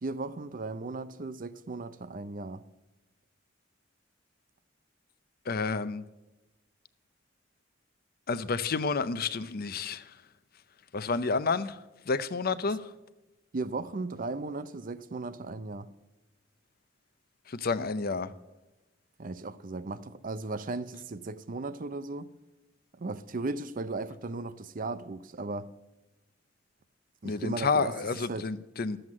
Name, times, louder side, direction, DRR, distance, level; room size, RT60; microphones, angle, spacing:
voice 1, 0.0-2.6 13.5-15.9 19.2-22.3 22.9-25.7 27.2-27.9 28.3-28.5, right 3 dB, 45° right, 0.6 m, -36 dB
voice 2, 5.5-6.0 8.3-10.1 10.9-11.8 12.1-12.8 17.5-18.3 27.2-29.0, left 4 dB, 50° left, 0.6 m, -30 dB
12.5 x 7.9 x 7.4 m
head